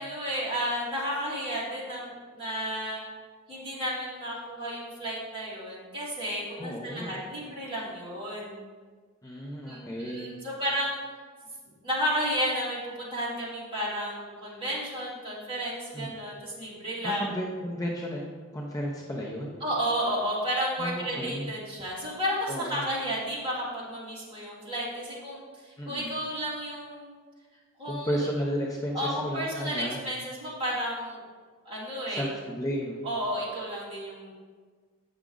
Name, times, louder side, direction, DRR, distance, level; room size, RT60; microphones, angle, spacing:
voice 1, 0.0-3.0 3.5-8.6 9.6-11.0 11.8-17.3 19.6-27.1 27.8-28.3 28.9-31.2 31.6-32.3 33.0-34.3, equal, 25° right, -7 dB, 2.3 m, -32 dB
voice 2, 6.6-7.2 9.2-10.3 15.9-16.1 17.0-19.6 20.8-21.5 22.5-22.9 25.8-26.1 27.8-30.0 32.1-33.0, equal, 15° left, -2 dB, 0.7 m, -33 dB
8.1 x 6.1 x 3.8 m, 1.5 s
head